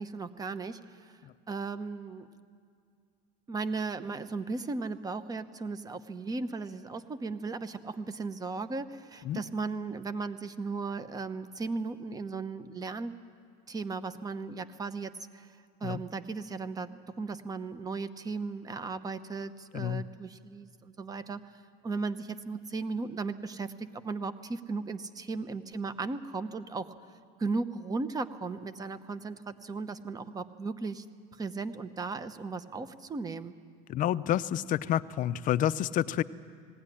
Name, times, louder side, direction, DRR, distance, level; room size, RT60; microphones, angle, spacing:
voice 1, 0.0-1.1 1.5-2.3 3.5-13.1 13.7-15.5 15.8-21.5 21.8-26.9 27.4-31.0 31.3-33.5, right 4 dB, 20° right, 13 dB, 0.8 m, -36 dB
voice 2, 33.9-36.2, left 11 dB, 40° left, 14 dB, 0.6 m, -29 dB
19.5 x 17.0 x 9.9 m, 2.3 s
cardioid pair, 135°, 20 cm